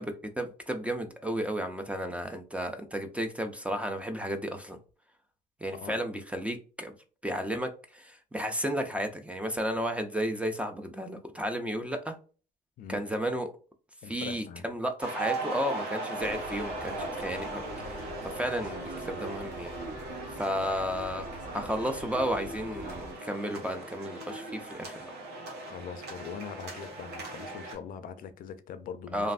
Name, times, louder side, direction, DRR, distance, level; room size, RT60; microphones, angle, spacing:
voice 1, 0.0-4.8 5.6-6.9 7.2-12.2 12.9-13.5 14.1-19.7 20.4-21.3 21.5-25.0 29.1-29.3, equal, 5° right, 0.4 m, -33 dB
voice 2, 14.0-14.6 25.6-29.3, left 7 dB, 55° left, 0.4 m, -42 dB
sound 1, 15.0-27.7, right 2 dB, 90° right, 1.1 m, -38 dB
sound 2, 16.2-23.1, right 2 dB, 45° right, 0.9 m, -44 dB
3.1 x 2.5 x 2.4 m
cardioid pair, 110°, 17 cm